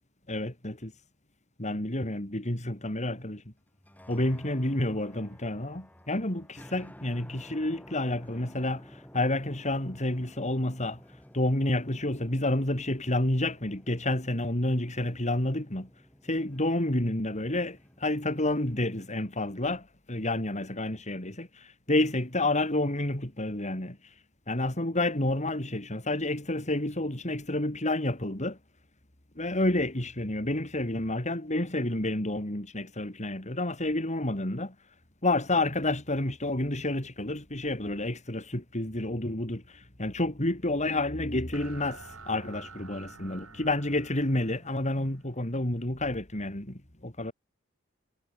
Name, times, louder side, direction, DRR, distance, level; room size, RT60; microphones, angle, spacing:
voice 1, 0.3-0.9 1.6-3.5 4.1-11.0 11.3-15.9 16.2-24.0 24.5-28.6 29.4-34.7 35.2-47.3, left 1 dB, 35° left, 4.1 m, -29 dB
sound 1, 3.7-19.3, equal, 10° left, 6.1 m, -53 dB
sound 2, 41.5-45.9, right 4 dB, 85° right, 4.9 m, -50 dB
head